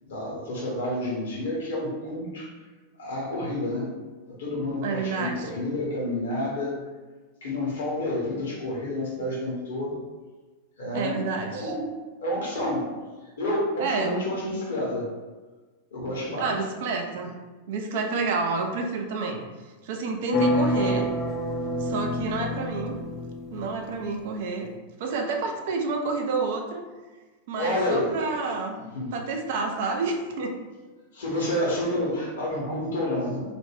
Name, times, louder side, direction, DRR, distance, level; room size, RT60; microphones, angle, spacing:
voice 1, 0.0-2.5 3.0-3.9 4.3-6.8 7.4-10.0 10.8-11.9 12.2-12.9 13.4-15.1 15.9-16.5 27.6-28.2 28.9-29.1 31.1-33.5, left 1 dB, 60° left, -3 dB, 0.8 m, -29 dB
voice 2, 4.8-5.5 10.9-11.7 13.8-14.3 16.4-17.3 17.7-19.4 19.8-21.1 21.8-23.0 23.5-24.7 25.0-26.8 27.5-28.8 29.1-30.5, right 4 dB, 55° right, 3 dB, 0.4 m, -29 dB
sound 1, 20.3-24.1, left 1 dB, 25° left, 0.4 m, -27 dB
2.4 x 2.1 x 3.2 m, 1.3 s
figure-of-eight pair, 90°, 0 cm